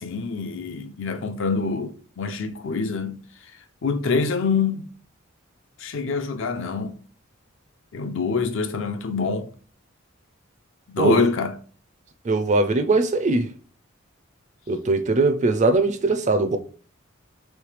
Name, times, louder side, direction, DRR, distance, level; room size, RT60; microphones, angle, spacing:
voice 1, 0.0-3.2 3.8-4.9 5.8-6.9 7.9-9.5 10.9-11.6, left 4 dB, 60° left, 0.5 m, -25 dB
voice 2, 12.2-13.5 14.7-16.6, right 3 dB, 35° right, 0.4 m, -20 dB
3.2 x 3.2 x 4.8 m
head